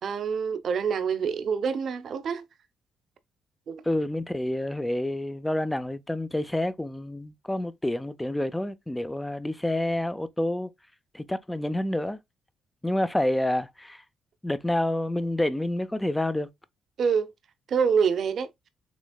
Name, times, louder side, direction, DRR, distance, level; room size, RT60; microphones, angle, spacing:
voice 1, 0.0-2.5 3.7-3.8 17.0-17.3 17.7-18.5, right 6 dB, 60° right, 0.8 m, -26 dB
voice 2, 3.9-10.7 11.1-12.2 12.8-14.0 14.4-16.5, left 1 dB, 10° left, 0.5 m, -28 dB
6.1 x 3.3 x 2.3 m
cardioid pair, 90°, 0 cm